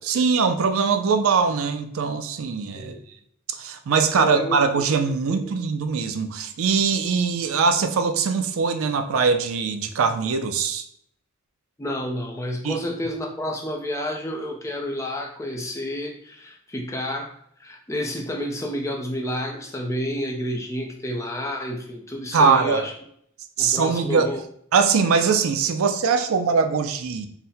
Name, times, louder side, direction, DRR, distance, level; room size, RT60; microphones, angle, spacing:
voice 1, 0.0-2.9 3.5-10.8 12.6-12.8 22.3-22.8 23.6-24.3 24.7-27.3, right 5 dB, 70° right, 8 dB, 0.4 m, -22 dB
voice 2, 4.2-4.5 5.3-5.5 11.8-17.3 17.6-22.9 23.6-24.4, equal, 15° left, 2 dB, 0.5 m, -30 dB
3.9 x 2.1 x 4.1 m, 0.66 s
head